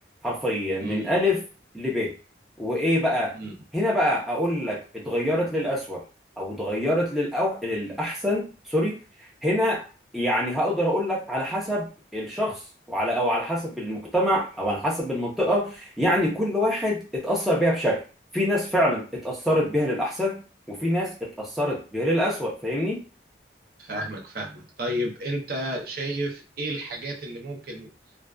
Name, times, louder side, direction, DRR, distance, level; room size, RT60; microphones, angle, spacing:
voice 1, 0.2-1.4 1.7-2.2 2.6-3.3 3.7-6.0 6.4-9.0 9.4-9.8 10.1-12.6 12.9-18.0 18.3-20.4 20.7-23.0, equal, ahead, -5 dB, 0.6 m, -25 dB
voice 2, 0.8-1.1 3.3-3.5 23.8-27.9, right 1 dB, 55° right, -1 dB, 0.6 m, -32 dB
2.5 x 2.2 x 2.2 m, 0.34 s
head